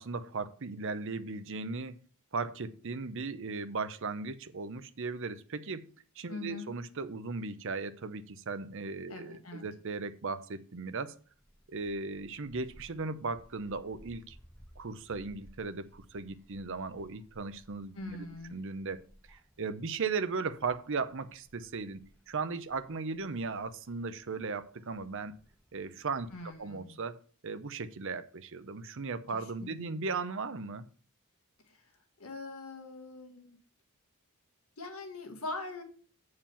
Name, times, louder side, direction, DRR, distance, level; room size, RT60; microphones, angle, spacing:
voice 1, 0.0-2.0 2.3-5.9 6.2-11.2 11.7-14.4 14.8-19.0 19.3-25.3 25.7-26.3 26.6-30.9, right 4 dB, 60° right, 0.7 m, -37 dB
voice 2, 6.3-6.7 9.1-9.7 17.9-18.6 26.3-26.9 29.6-30.0 31.7-31.8 32.2-33.6 34.8-35.8, left 2 dB, 70° left, 1.7 m, -42 dB
Gull seagull, 11.1-26.6, equal, 5° left, 1.5 m, -60 dB
7.4 x 4.8 x 6.9 m
head